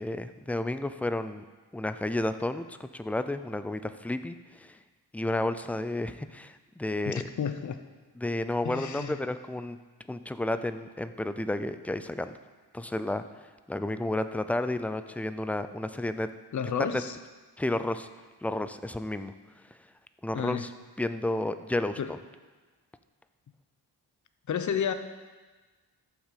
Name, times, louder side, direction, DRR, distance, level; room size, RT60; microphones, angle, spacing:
voice 1, 0.0-1.4 1.7-4.8 5.1-7.2 8.2-9.8 10.1-12.4 12.7-16.3 16.8-17.0 17.6-18.1 18.4-19.3 20.2-20.7 21.0-22.2, left 1 dB, 5° left, 11 dB, 0.4 m, -31 dB
voice 2, 7.1-7.8 8.6-9.2 16.5-17.2 20.3-20.7 22.0-22.1 24.5-24.9, left 7 dB, 45° left, 9 dB, 0.8 m, -31 dB
12.0 x 6.1 x 7.5 m, 1.3 s
wide cardioid pair, 125°, 40 cm